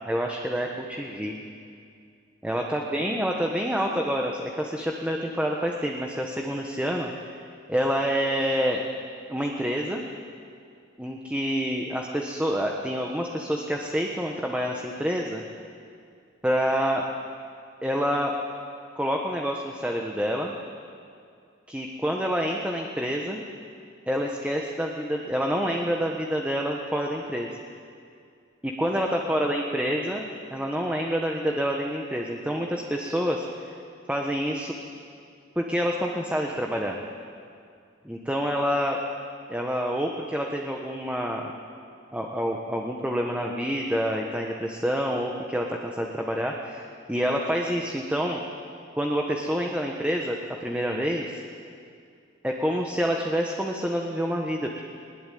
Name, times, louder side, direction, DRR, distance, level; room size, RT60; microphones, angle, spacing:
voice 1, 0.1-1.4 2.4-7.1 7.7-8.8 9.3-10.0 11.0-15.4 16.4-17.0 17.8-18.3 18.9-20.5 21.7-23.4 24.1-27.6 28.6-33.5 34.1-34.7 35.5-37.0 38.0-39.0 39.5-41.5 42.1-48.4 49.0-50.4 50.6-51.4 52.4-54.8, equal, 5° right, 0 dB, 1.4 m, -27 dB
21.0 x 21.0 x 9.4 m, 2.3 s
head